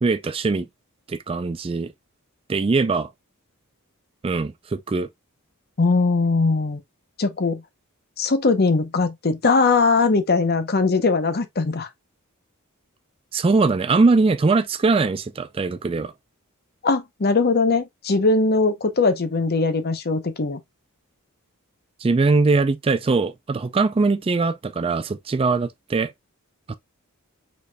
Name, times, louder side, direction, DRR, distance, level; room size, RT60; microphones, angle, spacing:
voice 1, 0.0-0.7 1.1-1.9 2.5-3.1 4.2-5.1 13.3-16.1 22.0-26.1 26.7-26.8, right 3 dB, 25° right, 0.3 m, -21 dB
voice 2, 5.8-6.8 7.2-7.6 8.2-11.9 16.8-20.6, left 3 dB, 45° left, 0.8 m, -20 dB
5.3 x 4.1 x 2.2 m
head